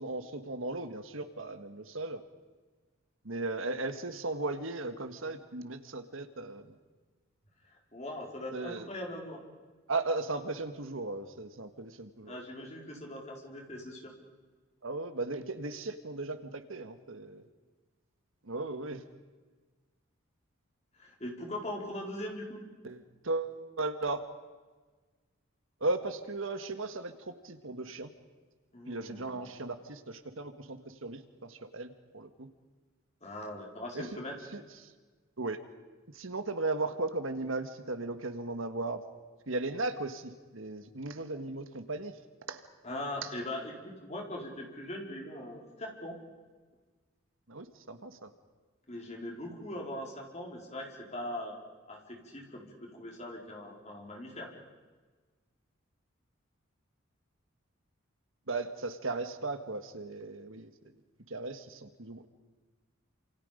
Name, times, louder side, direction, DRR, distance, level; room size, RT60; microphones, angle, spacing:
voice 1, 0.0-2.2 3.2-6.7 8.5-8.9 9.9-12.4 14.8-17.4 18.4-19.0 22.8-24.2 25.8-28.1 28.9-32.5 33.9-34.2 34.5-34.6 35.4-35.6 36.1-39.0 39.5-42.1 42.5-42.6 47.5-48.3 58.5-60.7 61.3-62.3, right 2 dB, 70° right, 9 dB, 1.6 m, -36 dB
voice 2, 7.6-9.4 12.3-14.1 20.9-22.6 28.7-29.4 33.2-34.4 42.8-46.2 48.9-51.6 51.9-54.5, left 1 dB, 30° left, 0 dB, 4.6 m, -41 dB
29.0 x 27.5 x 5.2 m, 1.4 s
head